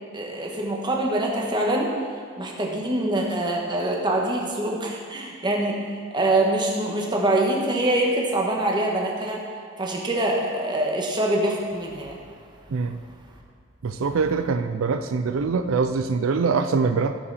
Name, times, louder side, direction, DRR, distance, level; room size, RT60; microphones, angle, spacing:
voice 1, 0.1-1.9 2.4-5.8 6.1-9.4 9.8-12.2, right 1 dB, 25° right, -1 dB, 1.4 m, -24 dB
voice 2, 13.8-17.2, right 4 dB, 90° right, 9 dB, 0.4 m, -23 dB
16.0 x 5.8 x 4.1 m, 2.2 s
head